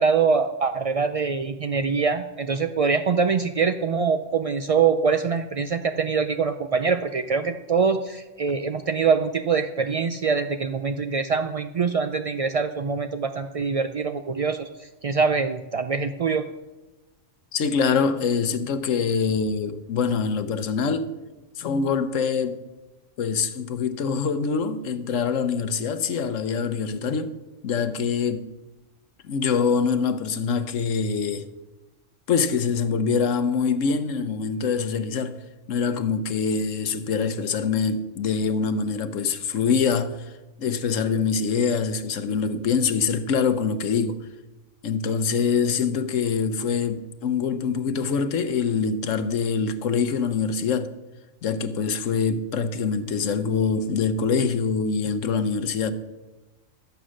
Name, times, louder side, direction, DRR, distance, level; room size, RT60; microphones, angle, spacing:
voice 1, 0.0-16.5, right 5 dB, 70° right, 0.3 m, -24 dB
voice 2, 17.5-21.1 21.6-22.6 23.2-27.3 27.6-28.4 29.2-31.5 32.3-35.4 35.7-40.3 40.6-44.3 44.8-50.9 51.4-55.9, left 5 dB, 80° left, 1.2 m, -24 dB
13.0 x 8.0 x 6.3 m
omnidirectional pair, 1.3 m